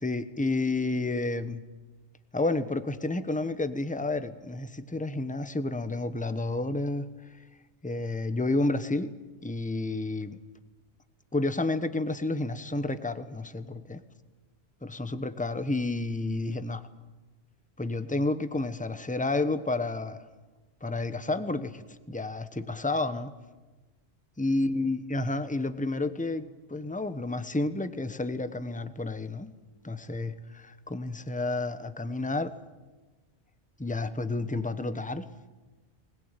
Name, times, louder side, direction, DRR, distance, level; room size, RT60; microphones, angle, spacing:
voice 1, 0.0-1.6 2.3-7.1 7.8-9.1 9.4-10.4 11.3-14.0 14.8-16.8 17.8-20.2 20.8-21.8 22.1-23.3 24.4-29.5 29.8-32.5 33.8-35.3, left 2 dB, 5° left, 11 dB, 1.0 m, -30 dB
21.0 x 20.5 x 9.1 m, 1.2 s
omnidirectional pair, 1.2 m